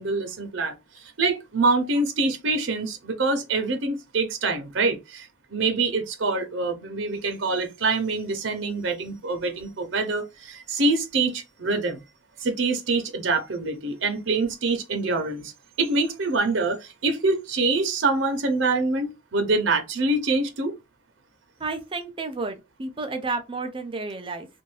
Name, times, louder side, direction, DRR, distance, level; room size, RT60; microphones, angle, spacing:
voice 1, 0.0-12.0 12.4-15.5 15.8-20.7, right 3 dB, 85° right, 0.8 m, -25 dB
voice 2, 21.6-24.5, right 3 dB, 25° right, 0.5 m, -31 dB
2.6 x 2.6 x 3.1 m
head